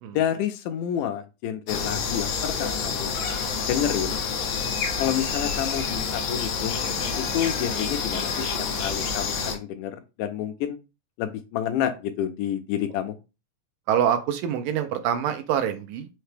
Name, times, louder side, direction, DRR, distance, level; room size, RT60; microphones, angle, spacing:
voice 1, 0.1-3.1 3.7-4.2 5.0-6.9 7.3-8.3 8.6-9.9 10.2-10.8 11.2-13.2, left 10 dB, 80° left, 2.1 m, -29 dB
sound 1, 1.7-9.5, left 5 dB, 65° left, 1.6 m, -28 dB
voice 2, 13.9-16.1, right 9 dB, 85° right, 2.3 m, -25 dB
5.7 x 2.2 x 3.2 m
omnidirectional pair, 3.8 m